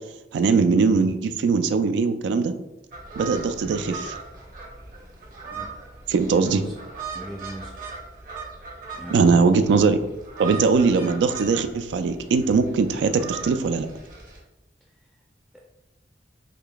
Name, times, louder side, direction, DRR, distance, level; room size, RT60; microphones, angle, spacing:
voice 1, 0.3-2.5 3.2-4.2 6.1-6.6 9.1-10.0 10.4-13.9, right 4 dB, 85° right, 9 dB, 0.3 m, -20 dB
sound 1, 2.9-14.4, right 4 dB, 50° right, 0.8 m, -39 dB
voice 2, 6.2-6.7 7.1-7.7 8.9-9.3, equal, 5° right, -5 dB, 0.4 m, -37 dB
3.7 x 3.3 x 2.3 m, 0.96 s
head